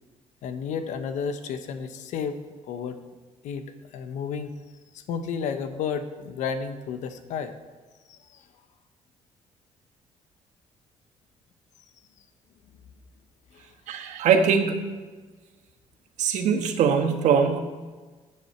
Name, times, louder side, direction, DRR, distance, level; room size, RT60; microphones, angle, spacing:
voice 1, 0.4-3.0 3.4-4.5 4.9-7.6 8.1-8.4 13.5-13.7, left 6 dB, 80° left, 9 dB, 1.0 m, -32 dB
voice 2, 13.9-14.9 16.2-17.6, right 6 dB, 75° right, 5 dB, 1.4 m, -22 dB
15.5 x 9.0 x 4.4 m, 1.4 s
cardioid pair, 115°, 12 cm